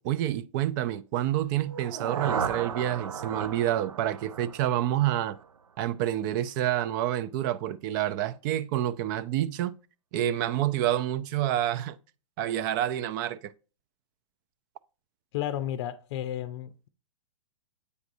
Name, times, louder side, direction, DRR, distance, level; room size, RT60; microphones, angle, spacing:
voice 1, 0.0-5.4 5.8-9.7 10.1-12.0 12.4-13.5, right 12 dB, 40° right, 0.4 m, -28 dB
sound 1, 1.6-5.6, right 6 dB, 85° right, 0.5 m, -35 dB
voice 2, 15.3-16.9, left 11 dB, 50° left, 0.5 m, -33 dB
8.2 x 4.7 x 2.6 m
hypercardioid pair, 125°, 17 cm